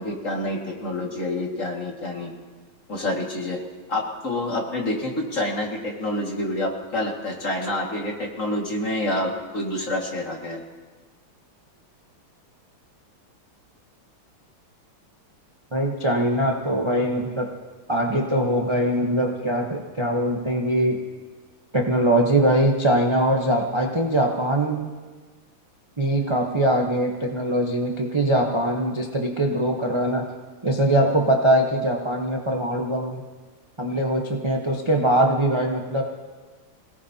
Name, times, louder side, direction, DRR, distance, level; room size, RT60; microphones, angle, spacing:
voice 1, 0.0-2.3 2.9-3.6 3.9-10.6, left 1 dB, 40° left, -1 dB, 2.3 m, -27 dB
voice 2, 15.7-17.5 17.9-21.0 21.7-24.9 26.0-30.3 30.6-33.2 33.8-36.0, right 1 dB, 25° right, 0 dB, 0.6 m, -22 dB
26.5 x 18.0 x 2.9 m, 1.4 s
omnidirectional pair, 2.3 m